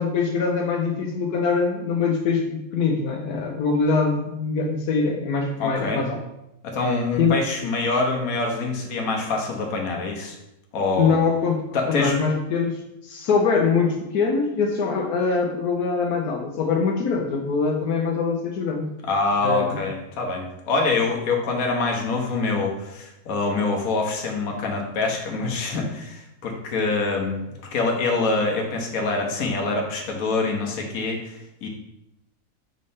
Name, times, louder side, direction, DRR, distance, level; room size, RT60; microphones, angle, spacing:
voice 1, 0.0-6.2 7.2-7.3 11.0-11.6 11.9-18.9 19.4-19.8, left 5 dB, 85° left, 0 dB, 1.2 m, -23 dB
voice 2, 5.6-6.1 6.6-10.4 10.7-11.2 11.7-12.1 19.0-31.7, left 3 dB, 70° left, 1 dB, 1.4 m, -25 dB
5.3 x 3.2 x 5.5 m, 0.89 s
omnidirectional pair, 1.6 m